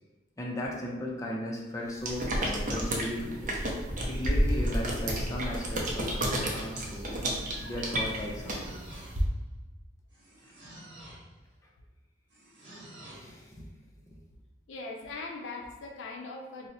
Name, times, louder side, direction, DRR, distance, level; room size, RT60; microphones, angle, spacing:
voice 1, 0.4-3.5 4.1-7.3 7.6-8.8 12.6-13.6, left 1 dB, 15° left, -2 dB, 0.5 m, -37 dB
sound 1, 2.0-9.2, right 1 dB, 45° right, 0.5 m, -31 dB
sound 2, 8.0-9.4 10.1-11.3 12.3-13.3, right 1 dB, 70° right, 1.0 m, -50 dB
voice 2, 14.7-16.7, left 3 dB, 80° left, 1 dB, 0.5 m, -40 dB
2.7 x 2.0 x 3.9 m, 1.1 s
head